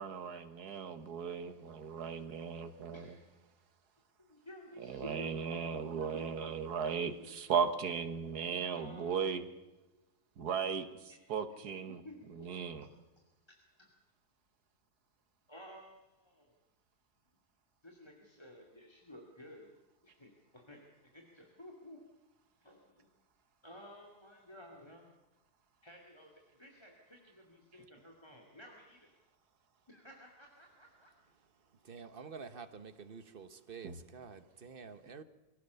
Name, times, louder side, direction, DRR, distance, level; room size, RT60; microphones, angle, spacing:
voice 1, 0.0-3.0 4.8-9.5 10.4-10.9 11.3-12.0 12.4-12.9 33.8-34.0, right 6 dB, 80° right, 1.9 m, -36 dB
voice 2, 2.9-3.3 3.6-3.7 4.2-6.5 8.7-9.3 11.1-11.2 11.9-12.7 15.5-16.5 17.8-19.7 20.0-20.8 21.1-22.0 22.6-23.1 23.6-25.1 25.8-29.1 29.9-31.1, left 1 dB, 15° left, 2.5 m, -54 dB
voice 3, 31.8-35.2, right 5 dB, 40° right, 1.1 m, -49 dB
23.5 x 17.0 x 6.9 m
omnidirectional pair, 1.7 m